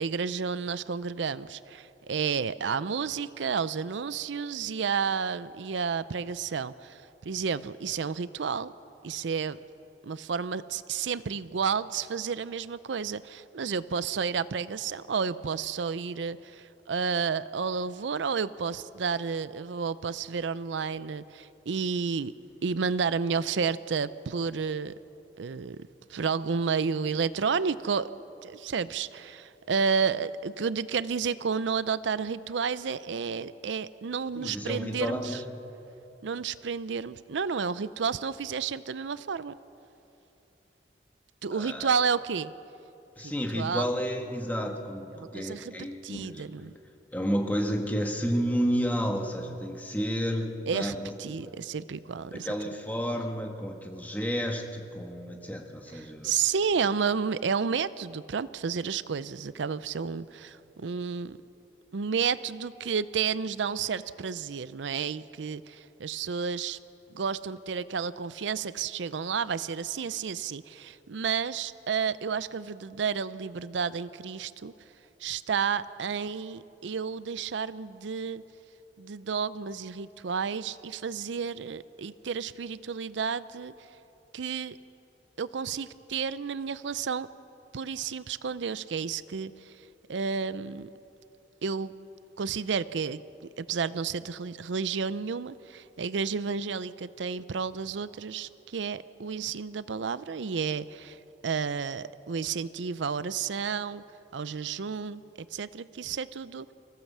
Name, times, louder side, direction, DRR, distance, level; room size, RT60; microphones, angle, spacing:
voice 1, 0.0-8.7 9.0-9.6 10.0-22.3 22.6-24.9 25.4-25.8 26.1-28.1 28.4-35.4 36.2-39.6 41.4-42.5 43.5-43.9 45.2-46.7 50.7-52.5 56.2-61.4 61.9-66.8 67.1-74.7 75.2-78.4 79.0-83.7 84.3-84.8 85.4-87.3 87.7-89.7 90.1-90.9 91.6-92.0 92.4-93.2 93.6-101.2 101.4-104.0 104.3-106.7, right 6 dB, 85° right, 16 dB, 0.5 m, -31 dB
voice 2, 34.3-35.4 41.5-41.9 43.2-46.6 47.1-51.1 51.4-51.5 52.3-56.3, equal, 10° left, 2 dB, 1.5 m, -31 dB
25.5 x 16.0 x 7.3 m, 3.0 s
head